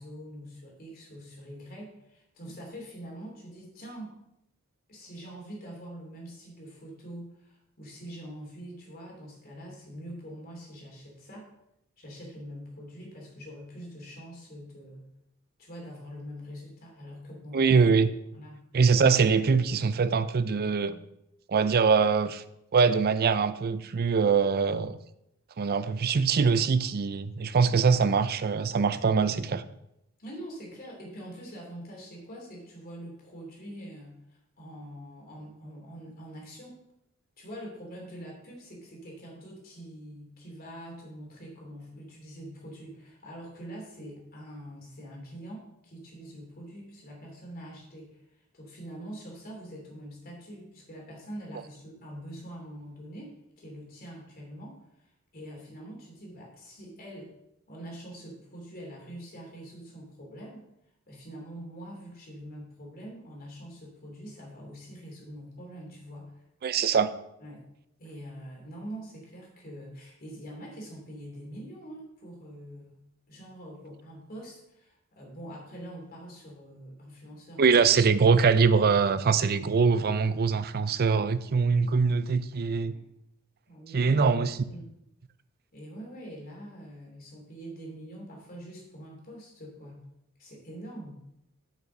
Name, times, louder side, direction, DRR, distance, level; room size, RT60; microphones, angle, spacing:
voice 1, 0.0-4.2 4.9-11.5 12.0-15.0 15.6-17.7 18.3-18.6 20.8-21.0 30.2-34.2 34.6-36.8 37.4-48.2 48.5-54.8 55.3-57.3 57.7-60.6 61.1-66.4 67.4-67.6 68.0-73.0 73.3-77.8 82.9-83.1 83.7-84.2 84.7-84.9 85.7-90.0 90.4-91.2, equal, 45° left, 3.1 m, -44 dB
voice 2, 17.5-18.1 18.7-20.9 21.5-22.4 22.7-25.0 25.6-29.6 66.6-67.1 77.6-82.9 83.9-84.6, right 5 dB, 45° right, 0.5 m, -23 dB
7.5 x 5.8 x 5.4 m
head